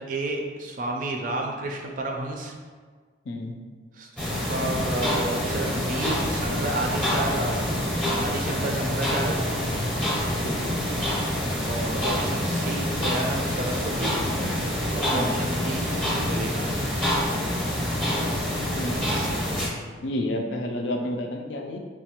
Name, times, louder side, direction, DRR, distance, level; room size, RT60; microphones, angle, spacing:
voice 1, 0.0-2.5 4.0-9.4 11.7-14.1 14.9-16.8 19.1-19.3, right 2 dB, 45° right, 1 dB, 0.3 m, -31 dB
sound 1, 4.2-19.7, equal, 5° left, 0.6 m, -26 dB
voice 2, 10.4-10.9 15.1-15.4 18.7-19.1 20.0-21.8, left 1 dB, 75° left, 3 dB, 0.4 m, -30 dB
3.1 x 2.2 x 2.9 m, 1.5 s
head